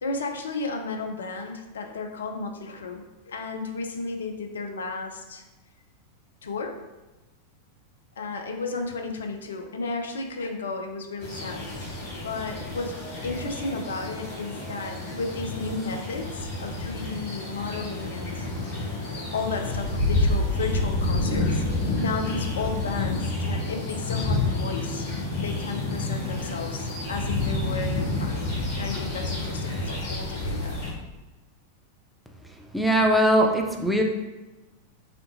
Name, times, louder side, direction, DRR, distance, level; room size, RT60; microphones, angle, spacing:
voice 1, 0.0-5.4 6.4-6.8 8.2-12.0 12.2-13.0 13.2-18.5 19.0-25.0 25.4-30.8, left 3 dB, 65° left, 4 dB, 0.5 m, -33 dB
sound 1, 11.2-30.9, left 2 dB, 50° left, 1.3 m, -29 dB
voice 2, 32.7-34.0, equal, ahead, 1 dB, 0.5 m, -20 dB
4.3 x 3.7 x 2.6 m, 1.1 s
figure-of-eight pair, 90°, 0 cm